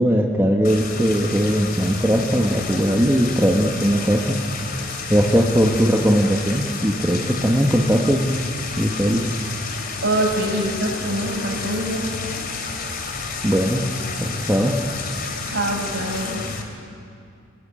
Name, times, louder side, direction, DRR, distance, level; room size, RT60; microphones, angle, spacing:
voice 1, 0.0-4.4 5.1-8.3 8.8-9.3 13.4-13.9 14.2-14.8, equal, 10° right, -1 dB, 1.4 m, -19 dB
sound 1, 0.6-16.6, left 4 dB, 45° left, 3.2 m, -30 dB
voice 2, 10.0-12.1 15.4-16.4, right 1 dB, 60° right, -1 dB, 7.4 m, -24 dB
27.5 x 20.5 x 8.9 m, 2.4 s
head